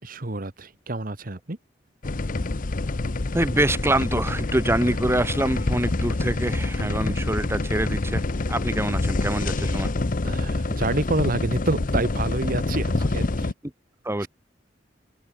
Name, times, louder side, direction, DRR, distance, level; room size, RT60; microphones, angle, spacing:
voice 1, 0.0-1.6 6.8-7.1 10.2-13.5 14.2-14.3, right 2 dB, 50° right, 1.4 m, -28 dB
sound 1, 2.0-13.5, left 2 dB, 45° left, 0.8 m, -26 dB
voice 2, 3.3-8.2 8.5-9.9 14.1-14.3, right 1 dB, 15° right, 1.7 m, -25 dB
open air
head